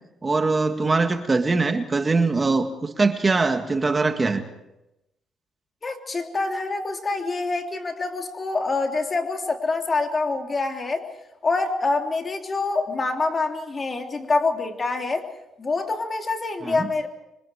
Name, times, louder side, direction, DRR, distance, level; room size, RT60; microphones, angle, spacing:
voice 1, 0.2-4.4 16.6-16.9, right 3 dB, 25° right, 6 dB, 1.8 m, -22 dB
voice 2, 5.8-11.1 11.4-15.3 15.6-17.1, left 3 dB, 30° left, 3 dB, 3.4 m, -26 dB
26.5 x 24.5 x 5.0 m, 0.90 s
cardioid pair, 90°, 0 cm